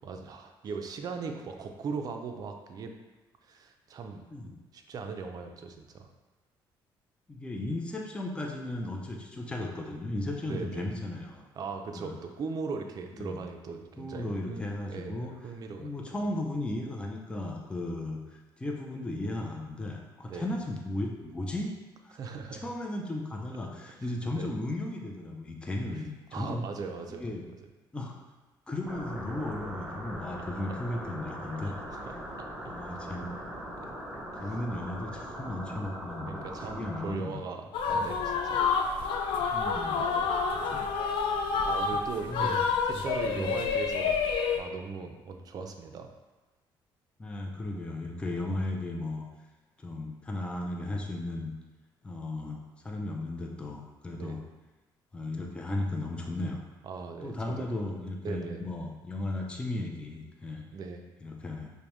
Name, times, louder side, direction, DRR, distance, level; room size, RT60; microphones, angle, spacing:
voice 1, 0.0-2.9 3.4-4.2 4.7-6.1 10.5-10.9 11.6-16.2 20.3-20.5 22.1-22.7 24.3-24.5 25.9-26.0 26.3-27.3 30.7-30.8 31.6-32.8 33.7-33.9 34.4-34.5 36.3-38.7 39.9-40.3 41.7-42.6 42.8-44.2 44.6-46.1 54.1-54.4 56.8-57.7 58.2-58.6 60.7-61.0, right 5 dB, 45° right, 4 dB, 0.4 m, -39 dB
voice 2, 7.3-11.4 11.9-12.2 13.2-13.4 14.0-15.5 15.8-21.7 22.0-22.2 22.6-26.7 27.1-27.4 27.9-28.1 28.7-32.1 32.6-33.3 34.4-36.4 36.7-37.4 37.9-38.1 39.5-40.1 40.5-40.9 42.3-42.7 42.9-43.0 43.3-43.5 47.2-49.3 49.8-51.5 52.0-54.4 55.1-56.6 57.2-60.6 61.2-61.7, left 1 dB, 10° left, 0 dB, 0.4 m, -35 dB
sound 1, 28.9-37.1, equal, 10° right, 0.8 m, -40 dB
sound 2, 37.7-44.6, left 5 dB, 75° left, 0.4 m, -28 dB
5.0 x 2.1 x 3.0 m, 1.2 s
cardioid pair, 120°, 9 cm